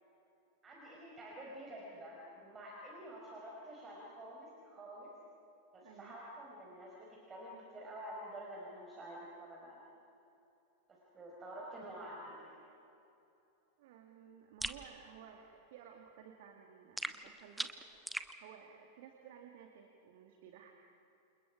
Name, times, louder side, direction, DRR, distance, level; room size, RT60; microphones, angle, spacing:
voice 1, 0.6-5.1 5.7-6.9 7.3-9.8 11.1-12.6, right 1 dB, 20° right, -4 dB, 5.3 m, -48 dB
voice 2, 5.8-6.1 13.8-17.7 18.4-20.7, right 8 dB, 50° right, 3 dB, 2.2 m, -55 dB
sound 1, 14.6-14.8 17.0-18.3, right 1 dB, 5° right, 1.0 m, -40 dB
29.5 x 28.0 x 5.0 m, 2.8 s
figure-of-eight pair, 90°, 0 cm